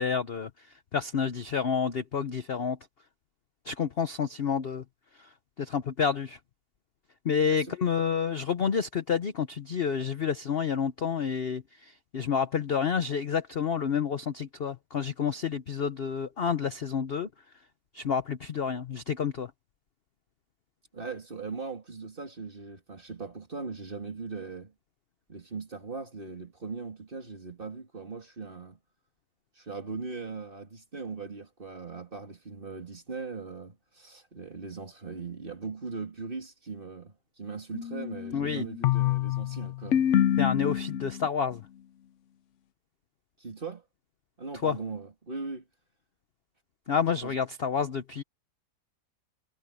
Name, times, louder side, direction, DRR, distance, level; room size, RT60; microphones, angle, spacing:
voice 1, 0.0-2.8 3.6-4.8 5.1-6.4 7.2-17.3 17.9-19.5 38.3-38.6 40.4-41.7 44.6-44.8 46.9-48.2, left 6 dB, 50° left, 0.7 m, -29 dB
voice 2, 20.9-24.7 25.3-28.8 29.5-40.1 43.4-43.8 44.4-45.7 47.2-47.4, right 4 dB, 30° right, 2.8 m, -39 dB
sound 1, 37.7-41.3, left 11 dB, 85° left, 0.6 m, -27 dB
omnidirectional pair, 2.0 m